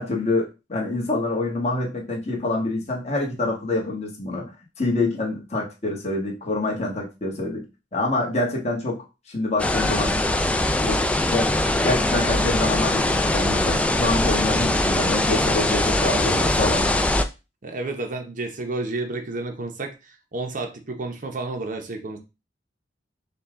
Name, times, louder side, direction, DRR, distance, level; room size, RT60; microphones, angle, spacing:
voice 1, 0.0-4.5 4.8-7.6 7.9-9.0 9.3-10.2 10.8-11.5 11.8-17.0, left 2 dB, 35° left, -1 dB, 1.3 m, -26 dB
sound 1, 9.6-17.3, left 1 dB, 5° left, 0.3 m, -22 dB
voice 2, 17.6-22.2, right 2 dB, 45° right, 4 dB, 0.7 m, -31 dB
5.5 x 2.3 x 3.6 m, 0.27 s
head